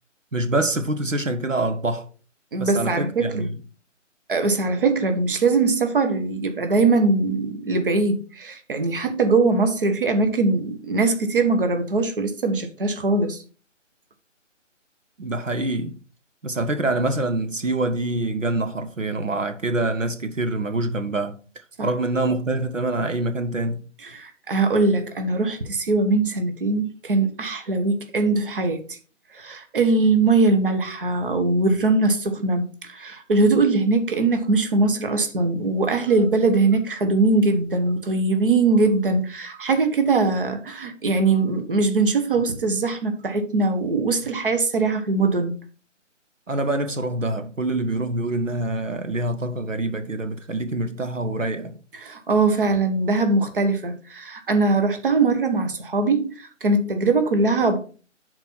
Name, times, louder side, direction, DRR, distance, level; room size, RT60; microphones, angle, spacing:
voice 1, 0.3-2.1 2.6-3.5 15.2-16.0 16.4-23.9 46.5-51.8, right 2 dB, 85° right, 1.1 m, -25 dB
voice 2, 2.5-3.5 4.3-13.4 21.8-21.9 24.0-29.0 29.3-45.5 51.9-57.8, right 3 dB, 45° right, 1.4 m, -21 dB
10.5 x 4.5 x 4.4 m
figure-of-eight pair, 150°, 38 cm